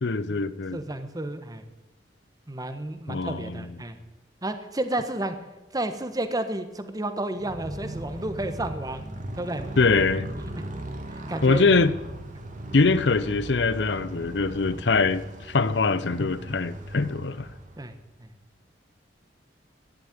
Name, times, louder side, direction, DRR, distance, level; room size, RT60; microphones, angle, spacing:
voice 1, 0.0-0.8 3.1-3.8 9.8-10.3 11.4-11.9 12.7-17.5, left 4 dB, 70° left, 16 dB, 0.7 m, -23 dB
voice 2, 0.7-1.6 2.5-4.0 4.4-5.4 5.7-9.1 9.3-9.6 10.5-10.6 11.3-11.8 12.3-12.4 17.8-17.9 18.2-18.3, right 1 dB, 20° right, 9 dB, 1.3 m, -31 dB
Motorcycle, 7.3-18.0, right 1 dB, 45° right, 1.8 m, -38 dB
13.0 x 10.5 x 9.6 m, 1.1 s
head